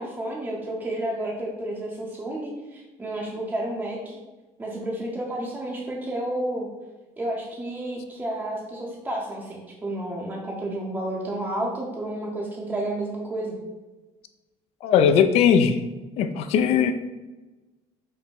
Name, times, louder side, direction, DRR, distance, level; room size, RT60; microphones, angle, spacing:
voice 1, 0.0-4.2 4.6-6.7 7.2-13.6, right 1 dB, 10° right, -4 dB, 0.6 m, -31 dB
voice 2, 14.8-15.8 16.2-16.9, left 7 dB, 55° left, 8 dB, 0.4 m, -19 dB
5.1 x 2.1 x 4.5 m, 1.2 s
cardioid pair, 135°, 13 cm